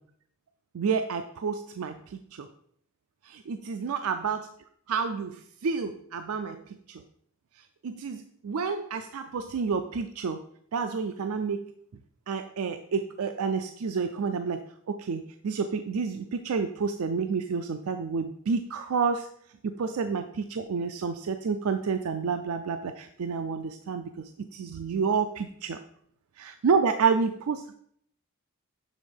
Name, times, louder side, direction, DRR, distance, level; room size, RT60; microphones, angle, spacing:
voice 1, 0.7-2.5 3.3-4.5 4.9-6.6 6.9-7.0 7.8-10.4 10.7-11.7 12.3-14.6 14.9-19.3 19.6-25.8 26.4-27.8, right 5 dB, 80° right, 8 dB, 0.4 m, -29 dB
7.3 x 3.5 x 5.2 m, 0.66 s
head